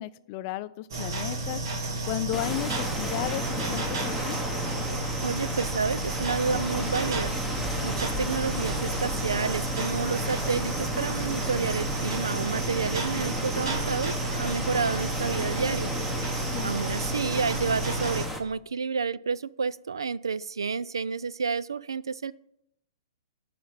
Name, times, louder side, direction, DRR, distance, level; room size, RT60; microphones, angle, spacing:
voice 1, 0.0-1.6 2.1-4.4 16.5-16.7, left 15 dB, 40° left, 14 dB, 0.5 m, -34 dB
sound 1, 0.9-18.3, right 2 dB, 65° right, 2.7 m, -32 dB
sound 2, 2.3-18.4, equal, 5° right, 1.1 m, -34 dB
voice 2, 5.2-7.3 7.8-15.9 16.6-22.3, right 5 dB, 90° right, 19 dB, 0.4 m, -30 dB
11.0 x 5.1 x 8.0 m, 0.77 s
hypercardioid pair, 130°, 2 cm